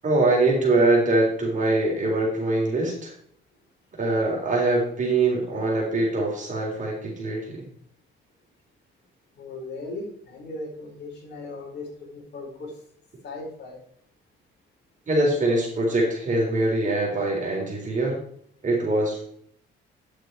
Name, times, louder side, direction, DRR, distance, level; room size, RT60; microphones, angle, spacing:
voice 1, 0.0-3.1 4.0-7.7 15.1-18.2 18.6-19.2, right 2 dB, 40° right, -2 dB, 3.9 m, -23 dB
voice 2, 9.4-12.7 13.2-13.8, left 2 dB, 60° left, -1 dB, 4.8 m, -37 dB
9.4 x 8.1 x 4.6 m, 0.62 s
cardioid pair, 90°, 20 cm